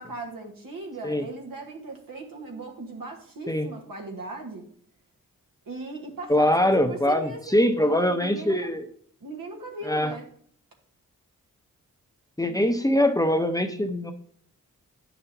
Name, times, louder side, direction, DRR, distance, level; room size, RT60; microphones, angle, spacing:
voice 1, 0.0-4.7 5.7-8.7 9.2-10.3 12.5-12.6, right 2 dB, 80° right, 1 dB, 1.5 m, -38 dB
voice 2, 6.3-8.8 9.8-10.1 12.4-14.1, left 1 dB, 10° left, 6 dB, 0.8 m, -23 dB
9.3 x 5.9 x 2.8 m, 0.62 s
cardioid pair, 45°, 33 cm